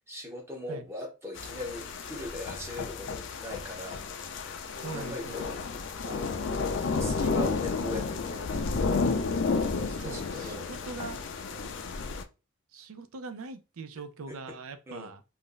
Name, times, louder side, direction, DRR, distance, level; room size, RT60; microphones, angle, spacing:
voice 1, 0.1-4.5 4.9-5.6 6.0-6.7 7.0-9.1 9.7-11.0 11.4-11.8 14.3-14.6 14.9-15.1, left 2 dB, 10° right, 0.7 m, -41 dB
sound 1, 1.4-12.2, left 4 dB, 55° left, 0.4 m, -32 dB
voice 2, 4.8-5.5 10.0-11.2 12.7-15.2, right 4 dB, 80° right, 0.5 m, -42 dB
2.5 x 2.0 x 3.7 m
head